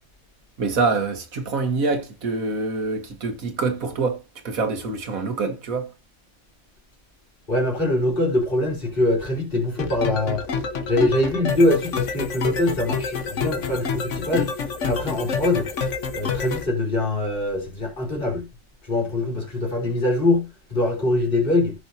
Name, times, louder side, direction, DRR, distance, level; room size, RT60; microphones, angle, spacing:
voice 1, 0.6-4.2 4.4-5.9, right 4 dB, 75° right, 1.9 m, -25 dB
voice 2, 7.5-14.5 14.8-15.7 16.1-18.4 18.8-21.7, left 1 dB, 40° left, 3.8 m, -23 dB
sound 1, 9.8-16.6, left 5 dB, 60° left, 1.5 m, -28 dB
15.0 x 6.2 x 2.8 m
omnidirectional pair, 1.5 m